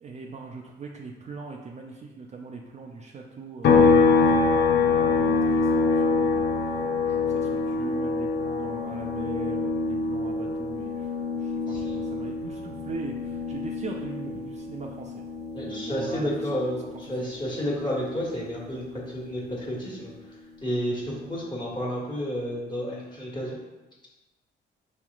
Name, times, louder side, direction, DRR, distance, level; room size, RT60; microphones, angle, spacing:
voice 1, 0.0-15.3 15.6-16.3 17.2-17.3, right 4 dB, 35° right, 0 dB, 0.4 m, -41 dB
sound 1, 3.6-17.2 17.5-19.7, left 4 dB, 55° left, 0.4 m, -25 dB
voice 2, 11.5-12.0 15.5-20.1 20.6-23.6, equal, 25° left, -5 dB, 1.4 m, -31 dB
4.9 x 3.0 x 2.4 m, 1.1 s
cardioid pair, 90°, 20 cm